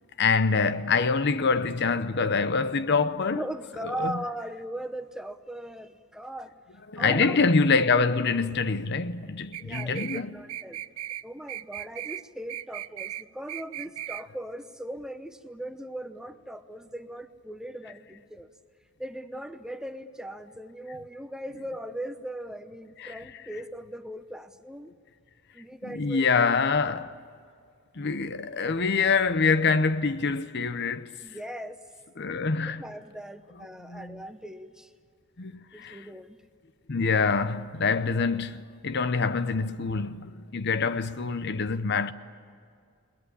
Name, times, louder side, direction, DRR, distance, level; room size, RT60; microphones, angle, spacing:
voice 1, 0.2-3.4 4.0-4.2 6.9-10.3 23.0-23.2 25.9-27.2 27.9-31.2 32.2-32.9 33.8-34.2 35.4-36.1 36.9-42.1, left 4 dB, 50° left, 0.7 m, -25 dB
voice 2, 3.3-6.5 7.0-7.4 9.6-10.8 11.2-18.5 19.0-24.9 25.5-26.3 26.6-26.7 31.2-31.8 32.2-32.3 32.7-34.9 35.7-36.4, right 1 dB, 5° right, 0.8 m, -39 dB
sound 1, 9.5-10.2 10.5-11.2 11.5-12.2 12.5-13.2 13.5-14.2, right 13 dB, 85° right, 0.5 m, -37 dB
22.0 x 19.5 x 10.0 m
head